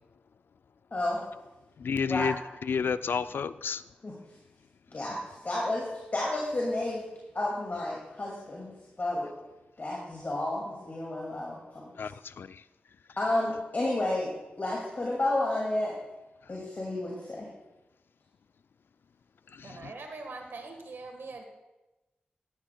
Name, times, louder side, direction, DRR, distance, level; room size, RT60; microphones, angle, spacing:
voice 1, 0.9-1.2 2.1-2.3 4.0-4.2 4.9-5.2 5.4-7.1 7.3-8.7 9.0-9.3 9.8-11.9 13.2-16.0 16.5-17.5, left 1 dB, 50° left, -3 dB, 2.3 m, -31 dB
voice 2, 1.8-2.4 2.7-3.8 12.0-12.6 19.5-19.9, left 6 dB, 75° left, 14 dB, 0.3 m, -31 dB
voice 3, 19.6-21.4, right 3 dB, 80° right, 4 dB, 1.5 m, -42 dB
12.5 x 12.0 x 2.3 m, 1.0 s
cardioid pair, 45°, 4 cm